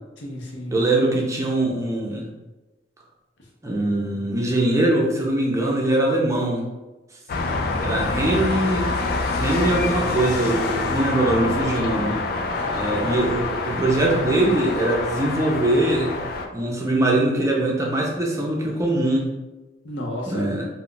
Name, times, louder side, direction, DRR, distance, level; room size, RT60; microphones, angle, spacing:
voice 1, 0.2-0.7 12.3-13.6 19.8-20.5, left 1 dB, 90° left, -1 dB, 0.7 m, -34 dB
voice 2, 0.7-2.3 3.6-6.6 7.8-8.9 9.3-12.2 12.7-16.1 16.5-19.3 20.3-20.7, right 1 dB, 15° right, -2 dB, 0.5 m, -22 dB
sound 1, 7.3-16.5, left 3 dB, 55° left, 0.3 m, -26 dB
2.3 x 2.1 x 3.8 m, 1.1 s
head